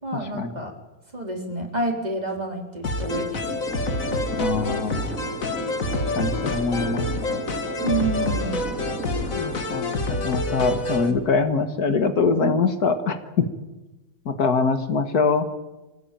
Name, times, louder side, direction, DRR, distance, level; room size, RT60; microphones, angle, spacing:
voice 1, 0.0-0.7 1.1-3.4 7.8-8.6, right 2 dB, 25° right, 3 dB, 3.9 m, -28 dB
sound 1, 2.8-11.1, left 2 dB, 60° left, 2.4 m, -27 dB
sound 2, 3.1-11.4, right 2 dB, 60° right, 2.9 m, -36 dB
voice 2, 4.4-5.0 6.2-7.1 9.3-13.5 14.3-15.5, left 4 dB, 80° left, 9 dB, 2.2 m, -23 dB
25.5 x 18.0 x 9.2 m, 1.1 s
omnidirectional pair, 1.6 m